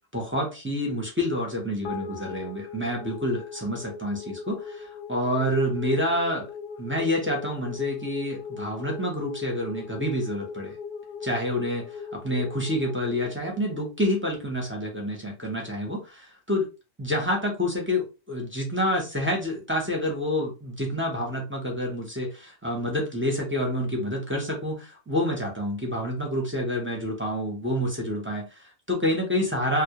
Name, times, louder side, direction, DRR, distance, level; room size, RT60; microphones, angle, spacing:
voice 1, 0.1-6.5 6.8-10.8 11.2-16.7 17.0-29.8, left 1 dB, 15° right, -1 dB, 0.5 m, -28 dB
sound 1, 1.8-14.4, left 5 dB, 70° left, 0.8 m, -40 dB
2.2 x 2.0 x 2.8 m, 0.29 s
omnidirectional pair, 1.1 m